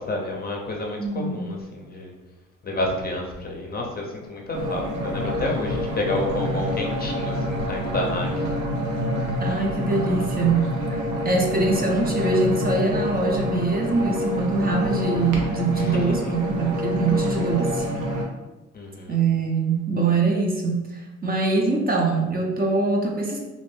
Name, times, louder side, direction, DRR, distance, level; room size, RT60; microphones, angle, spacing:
voice 1, 0.0-2.1 2.6-8.5 15.7-16.3 18.7-19.2, left 2 dB, 30° left, 0 dB, 0.5 m, -30 dB
voice 2, 1.0-1.5 9.4-10.7 11.2-17.9 19.1-23.4, right 3 dB, 30° right, 0 dB, 0.5 m, -23 dB
sound 1, 4.5-18.2, equal, 90° right, 0.6 m, -27 dB
2.6 x 2.0 x 3.1 m, 1.1 s
cardioid pair, 90°, 30 cm